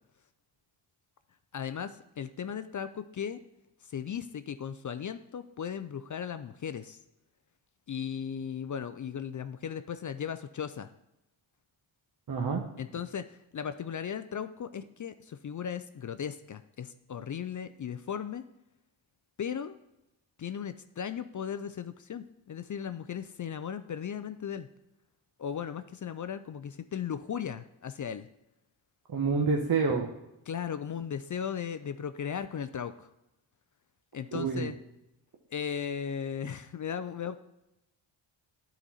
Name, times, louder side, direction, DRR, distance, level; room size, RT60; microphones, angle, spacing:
voice 1, 1.5-3.4 3.8-7.0 7.9-10.9 12.8-18.4 19.4-19.8 20.4-24.7 25.4-28.3 30.5-33.1 34.1-34.7 35.5-37.4, left 8 dB, 40° left, 11 dB, 0.4 m, -37 dB
voice 2, 12.3-12.6 29.1-30.1 34.3-34.7, right 4 dB, 45° right, 2 dB, 0.9 m, -28 dB
9.8 x 4.0 x 4.1 m, 0.89 s
cardioid pair, 50°, 49 cm